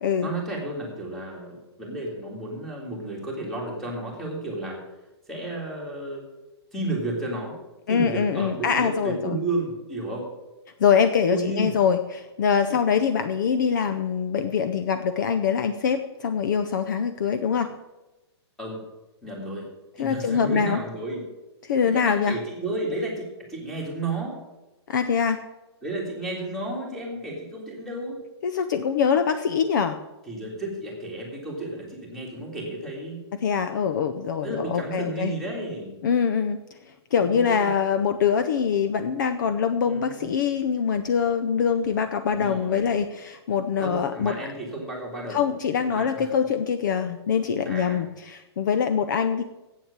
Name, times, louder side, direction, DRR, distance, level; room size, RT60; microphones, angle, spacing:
voice 1, 0.2-4.8 5.3-6.2 6.7-7.6 7.9-10.3 11.3-11.7 18.6-18.8 19.2-19.7 20.0-21.2 21.8-24.4 25.8-28.2 30.3-33.2 34.4-35.9 37.2-37.7 39.8-40.3 42.3-42.9 43.8-45.4 45.9-46.3 47.6-48.0, right 2 dB, ahead, -2 dB, 2.0 m, -32 dB
voice 2, 7.9-9.4 10.8-17.7 20.0-20.8 21.6-22.4 24.9-25.4 28.4-30.0 33.4-35.3 36.0-36.6 37.1-44.3 45.3-49.4, left 7 dB, 45° left, 9 dB, 0.6 m, -24 dB
8.2 x 7.5 x 8.1 m, 1.0 s
hypercardioid pair, 175°, 14 cm